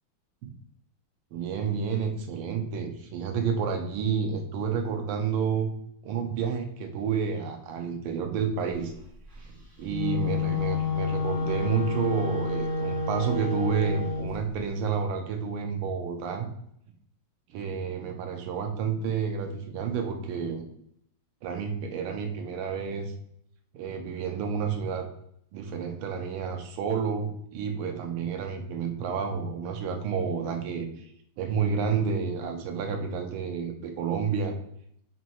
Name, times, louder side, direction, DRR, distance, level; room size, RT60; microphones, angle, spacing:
voice 1, 1.3-5.7 6.0-8.9 9.4-9.5 9.8-16.5 17.5-20.7 21.4-23.1 23.7-25.1 25.5-31.0 31.4-34.6, right 6 dB, 90° right, 4 dB, 1.5 m, -30 dB
Wind instrument woodwind instrument, 9.8-14.3, left 4 dB, 35° right, 1.3 m, -29 dB
4.4 x 3.0 x 2.9 m, 0.69 s
omnidirectional pair, 2.4 m